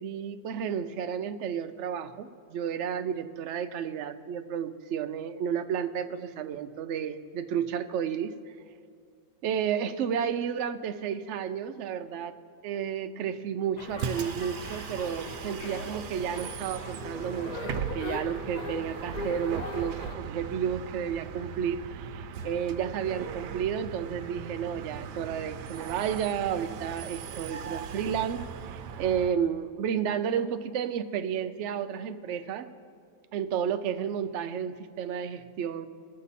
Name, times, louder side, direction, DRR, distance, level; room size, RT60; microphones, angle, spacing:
voice 1, 0.0-8.3 9.4-32.7 33.3-35.9, right 8 dB, 70° right, 9 dB, 0.7 m, -32 dB
sound 1, 13.8-20.1, left 3 dB, 40° left, 0.6 m, -40 dB
Bus, 13.9-29.3, right 7 dB, 90° right, 1.2 m, -39 dB
21.5 x 7.6 x 4.1 m, 2.2 s
omnidirectional pair, 1.8 m